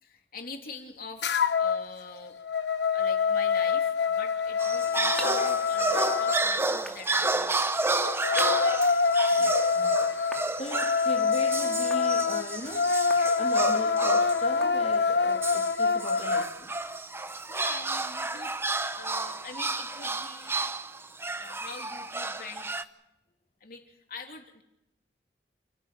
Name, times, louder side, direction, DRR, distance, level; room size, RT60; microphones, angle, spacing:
voice 1, 0.0-2.4 2.9-7.7 17.5-18.5 18.9-20.6 21.4-22.8 23.6-24.6, left 4 dB, 55° left, 3.3 m, -44 dB
sound 1, 1.2-1.8 2.2-6.4 7.9-16.5, left 5 dB, 70° left, 1.0 m, -26 dB
sound 2, 4.4-15.3, left 1 dB, 5° left, 2.4 m, -48 dB
sound 3, 4.6-14.5 15.4-22.8, right 2 dB, 15° right, 0.8 m, -31 dB
voice 2, 9.3-10.0 10.6-16.7, left 1 dB, 35° left, 1.9 m, -38 dB
28.5 x 12.0 x 9.2 m
head